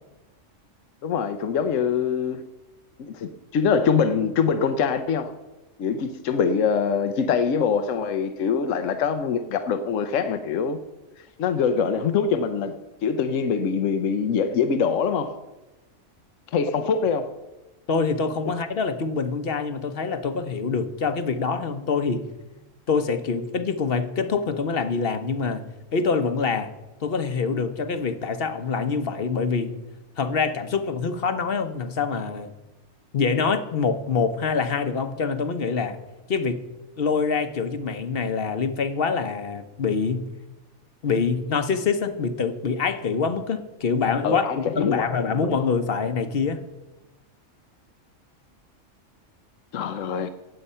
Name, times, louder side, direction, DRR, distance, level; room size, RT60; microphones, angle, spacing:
voice 1, 1.0-2.4 3.0-5.3 5.8-10.8 11.4-15.4 16.5-17.3 44.2-45.2 45.4-45.5 49.7-50.3, left 6 dB, 80° left, 1.1 m, -24 dB
voice 2, 17.9-22.3 22.9-25.6 25.9-26.7 27.0-29.7 30.2-32.5 33.1-36.0 36.3-36.6 37.0-40.3 41.0-46.6, left 5 dB, 50° left, 1.0 m, -25 dB
17.0 x 7.7 x 5.5 m
omnidirectional pair, 1.3 m